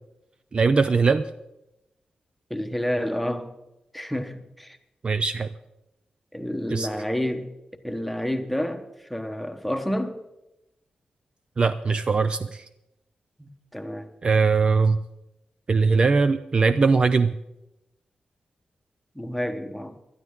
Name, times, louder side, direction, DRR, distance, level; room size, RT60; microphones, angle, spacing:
voice 1, 0.5-1.3 5.0-5.5 6.7-6.9 11.6-12.6 14.2-15.0 15.7-17.3, right 4 dB, 40° right, 11 dB, 0.4 m, -20 dB
voice 2, 2.5-3.5 3.9-4.8 6.3-7.5 7.8-8.8 9.1-10.2 13.4-14.1 19.1-19.9, equal, ahead, 6 dB, 1.1 m, -29 dB
19.0 x 12.5 x 3.7 m, 0.91 s
wide cardioid pair, 135°, 3 cm